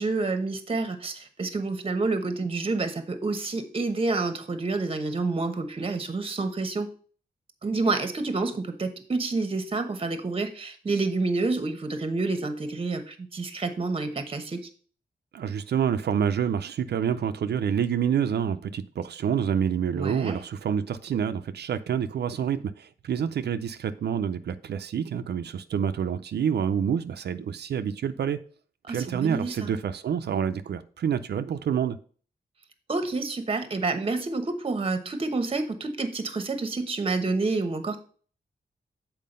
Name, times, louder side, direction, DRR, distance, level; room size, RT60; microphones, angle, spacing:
voice 1, 0.0-6.9 7.6-14.7 19.9-20.4 28.9-29.7 32.9-38.0, right 3 dB, 35° right, 1.0 m, -28 dB
voice 2, 15.3-28.4 28.9-32.0, right 8 dB, 80° right, 0.5 m, -27 dB
7.5 x 4.5 x 5.3 m
wide cardioid pair, 140°, 17 cm